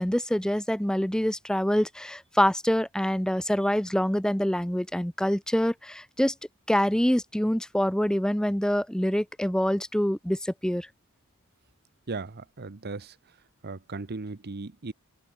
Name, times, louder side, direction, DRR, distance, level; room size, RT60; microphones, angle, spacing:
voice 1, 0.0-6.3 6.7-10.9, equal, 5° left, 0.7 m, -25 dB
voice 2, 12.1-13.2 13.6-14.9, right 3 dB, 45° right, 0.9 m, -37 dB
head